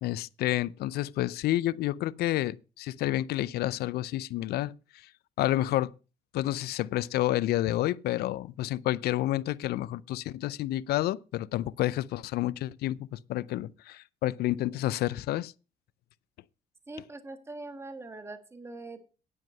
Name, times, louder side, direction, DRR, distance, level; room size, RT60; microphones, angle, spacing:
voice 1, 0.0-4.7 5.4-5.9 6.3-15.5, left 15 dB, 70° left, 0.5 m, -29 dB
voice 2, 16.9-19.0, right 2 dB, 15° right, 1.5 m, -42 dB
9.5 x 7.9 x 5.5 m
cardioid pair, 110°, 17 cm